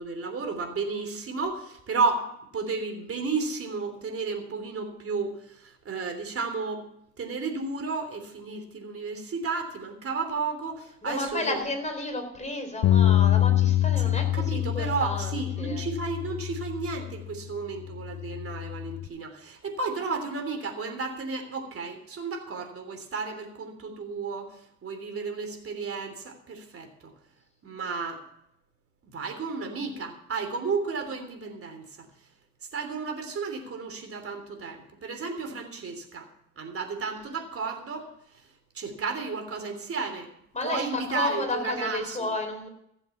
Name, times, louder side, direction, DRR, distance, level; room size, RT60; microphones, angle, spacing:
voice 1, 0.0-2.3 2.5-6.9 7.2-11.6 14.0-27.1 27.6-28.2 29.0-32.1 32.7-36.3 36.6-38.1 38.7-40.3 40.6-42.3, right 4 dB, 50° right, 5 dB, 3.4 m, -33 dB
voice 2, 11.0-15.3 15.6-15.8 40.5-40.8 41.1-42.7, left 2 dB, 25° left, 4 dB, 4.1 m, -32 dB
Bass guitar, 12.8-17.3 17.9-19.1, left 12 dB, 65° left, 0.8 m, -25 dB
15.5 x 7.7 x 7.3 m, 0.74 s
cardioid pair, 90°, 30 cm